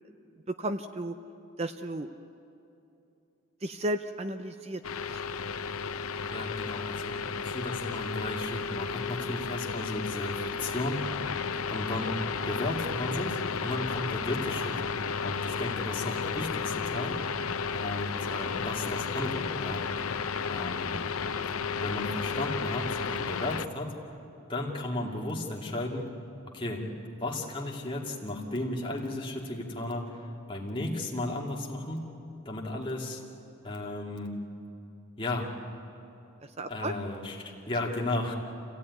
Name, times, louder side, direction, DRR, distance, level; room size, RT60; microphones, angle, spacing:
voice 1, 0.6-1.2 1.6-2.1 3.6-4.8 36.6-36.9, right 1 dB, 30° right, 9 dB, 0.6 m, -33 dB
sound 1, 4.8-23.6, left 5 dB, 90° left, 0.7 m, -33 dB
voice 2, 6.3-11.0 11.7-12.2 12.5-14.8 15.2-17.2 17.7-19.9 20.5-21.0 21.8-23.9 24.5-26.1 26.5-26.9 27.2-30.2 30.5-32.0 32.5-33.2 33.6-34.4 35.2-35.5 36.7-38.3, left 2 dB, 25° left, -1 dB, 2.4 m, -34 dB
28.0 x 16.0 x 9.6 m, 2.8 s
head